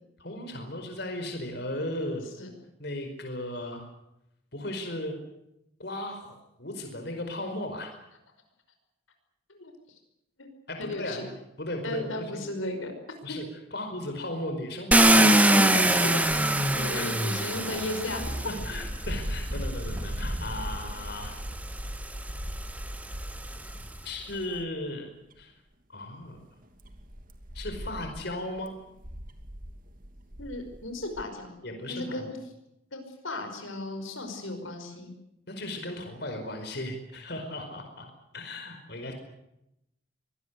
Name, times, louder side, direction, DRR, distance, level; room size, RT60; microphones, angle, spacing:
voice 1, 0.2-2.2 2.8-3.9 4.5-5.2 5.8-7.9 10.7-11.3 11.6-12.4 13.2-16.1 16.9-17.1 18.5-21.4 24.0-25.1 25.4-25.5 25.9-26.5 27.5-28.7 31.6-32.3 35.5-38.1 38.3-39.1, left 1 dB, 55° left, 5 dB, 4.9 m, -36 dB
voice 2, 10.8-11.2 11.8-12.9 13.3-13.4 16.0-16.3 16.7-18.2 30.4-31.5 31.9-32.4 32.9-35.1, left 2 dB, 80° left, 6 dB, 5.4 m, -35 dB
Car, 14.9-19.0 20.0-20.1 20.6-23.9, right 1 dB, 5° right, 1.6 m, -24 dB
sound 1, 16.4-24.0 24.3-24.8 25.3-25.4 26.3-31.2, equal, 45° right, 2.6 m, -39 dB
24.5 x 19.5 x 8.3 m, 0.84 s
head